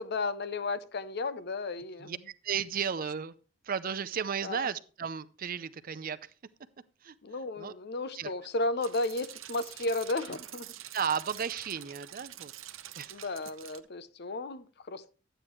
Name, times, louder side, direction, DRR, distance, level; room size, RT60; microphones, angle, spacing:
voice 1, 0.0-2.1 4.4-4.6 7.2-10.7 13.1-15.1, left 2 dB, 55° left, 0.7 m, -34 dB
voice 2, 2.0-3.3 3.6-6.3 7.0-7.1 7.6-7.7 8.1-8.3 10.9-12.5 13.0-13.2, right 7 dB, 45° right, 0.5 m, -34 dB
sound 1, 8.8-13.8, right 12 dB, 85° right, 0.7 m, -46 dB
11.5 x 9.0 x 3.1 m
head